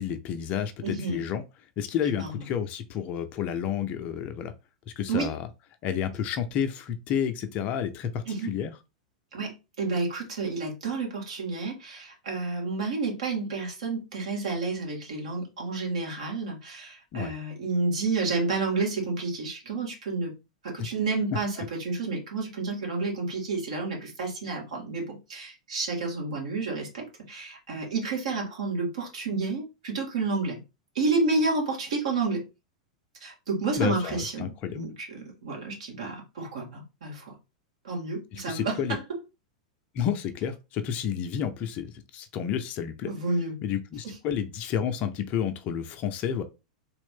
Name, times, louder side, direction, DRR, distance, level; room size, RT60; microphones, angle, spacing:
voice 1, 0.0-1.4 1.8-4.5 4.9-5.5 5.8-8.7 17.1-17.3 33.8-34.9 38.3-39.0 39.9-43.1 43.6-46.4, left 8 dB, 40° left, 0.6 m, -30 dB
voice 2, 0.8-1.2 2.1-2.5 5.1-5.3 8.3-8.5 9.3-20.3 20.6-30.6 31.0-32.4 33.2-37.3 37.8-39.0 43.1-43.6 44.0-44.1, right 3 dB, 65° right, 2.0 m, -30 dB
3.6 x 2.5 x 3.7 m
figure-of-eight pair, 95°, 4 cm